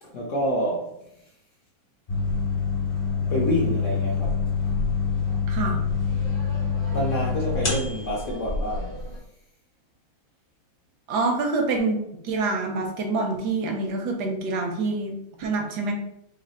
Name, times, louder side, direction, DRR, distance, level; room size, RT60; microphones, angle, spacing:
voice 1, 0.0-0.9 3.3-4.4 6.9-9.1, equal, 60° left, -3 dB, 0.8 m, -27 dB
sound 1, 2.1-9.1, left 5 dB, 35° left, 1.0 m, -26 dB
voice 2, 5.5-5.8 11.1-15.9, right 3 dB, 70° right, 2 dB, 1.1 m, -26 dB
3.3 x 2.7 x 4.0 m, 0.80 s
omnidirectional pair, 2.1 m